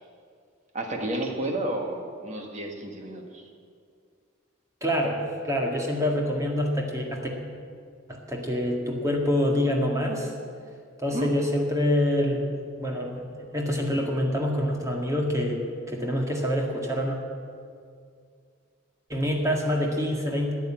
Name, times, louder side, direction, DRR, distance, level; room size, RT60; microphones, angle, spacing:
voice 1, 0.7-3.5 11.1-11.3, right 1 dB, 35° right, 2 dB, 1.5 m, -31 dB
voice 2, 4.8-7.3 8.1-10.3 11.0-12.5 12.8-15.6 15.9-17.2 19.1-20.5, left 1 dB, 15° right, 0 dB, 1.8 m, -26 dB
12.0 x 10.0 x 8.8 m, 2.2 s
head